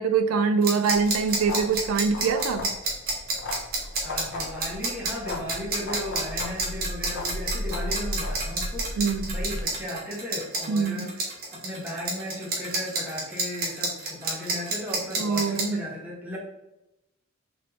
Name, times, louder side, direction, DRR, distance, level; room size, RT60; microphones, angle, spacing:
voice 1, 0.0-2.7 9.0-9.3 10.7-11.1 15.2-15.8, right 5 dB, 80° right, 9 dB, 0.3 m, -24 dB
sound 1, 0.6-15.6, right 3 dB, 45° right, 1.1 m, -29 dB
sound 2, 0.9-9.6, left 1 dB, 55° left, 0.7 m, -35 dB
voice 2, 4.0-11.2 11.5-16.4, left 1 dB, 10° right, -5 dB, 1.1 m, -35 dB
4.2 x 3.1 x 3.0 m, 0.92 s
head